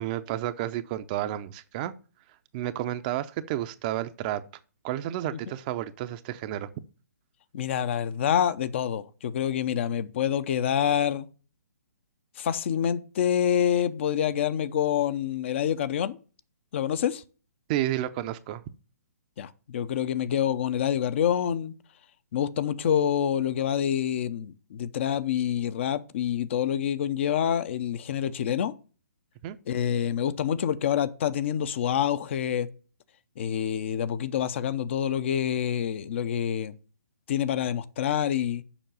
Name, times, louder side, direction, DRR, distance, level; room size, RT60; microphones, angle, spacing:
voice 1, 0.0-1.9 2.5-4.4 4.8-6.7 17.7-18.6 29.4-29.6, right 13 dB, 30° right, 0.6 m, -31 dB
voice 2, 7.5-11.3 12.4-16.2 16.7-17.2 19.4-21.7 22.3-28.7 29.7-32.7 33.4-36.8 37.3-38.6, left 9 dB, 45° left, 0.7 m, -27 dB
7.1 x 5.3 x 6.7 m
figure-of-eight pair, 135°, 9 cm